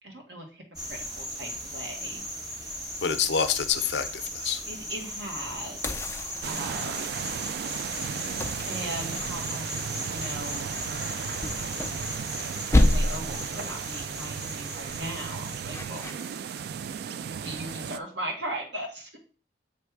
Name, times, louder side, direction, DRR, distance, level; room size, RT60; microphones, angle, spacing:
voice 1, 0.0-0.6 0.9-2.2 2.6-2.7 4.7-7.1 8.7-10.7 12.5-16.1 17.4-19.2, right 1 dB, 85° right, 1 dB, 1.8 m, -38 dB
sound 1, 0.7-16.5, equal, 20° right, 2.0 m, -37 dB
voice 2, 3.0-4.6, left 7 dB, 70° left, 10 dB, 0.6 m, -27 dB
sound 2, 5.8-7.1 8.4-9.6 11.4-12.4 12.7-13.4 15.7-16.1, left 1 dB, 15° left, 0.5 m, -27 dB
sound 3, 6.4-18.0, right 7 dB, 60° right, 0.3 m, -35 dB
7.2 x 3.3 x 4.7 m, 0.39 s
head